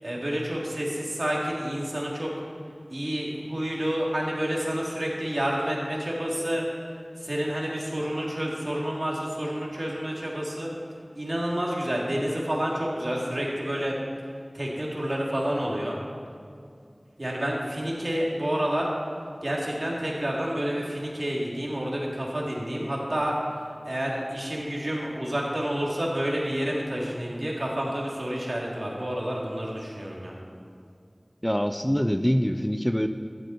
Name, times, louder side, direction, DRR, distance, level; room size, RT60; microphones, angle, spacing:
voice 1, 0.0-2.3 2.9-6.6 7.2-10.7 11.1-13.9 14.5-16.0 17.2-18.9 19.4-23.3 23.8-30.3, equal, 60° right, -4 dB, 3.7 m, -29 dB
voice 2, 31.4-33.1, equal, 10° left, 8 dB, 0.6 m, -24 dB
18.0 x 13.0 x 4.7 m, 2.3 s
wide cardioid pair, 40°, 0 cm